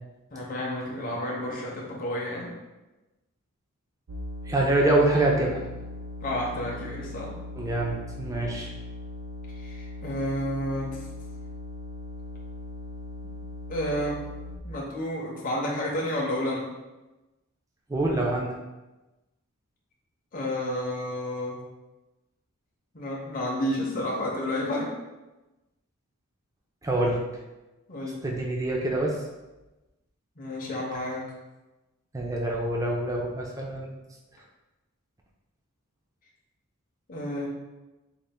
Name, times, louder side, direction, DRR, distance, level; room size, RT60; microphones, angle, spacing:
voice 1, 0.3-2.5 6.2-7.3 9.6-11.0 13.7-14.2 14.6-16.7 20.3-21.6 22.9-24.9 27.9-28.3 30.4-31.3 37.1-37.5, left 1 dB, 40° left, -3 dB, 0.6 m, -31 dB
sound 1, 4.1-14.6, left 2 dB, 85° right, 0.5 m, -39 dB
voice 2, 4.4-5.6 7.6-8.7 17.9-18.6 26.8-27.2 28.2-29.2 32.1-33.9, right 2 dB, 15° right, -1 dB, 0.4 m, -25 dB
3.8 x 2.4 x 3.5 m, 1.1 s
head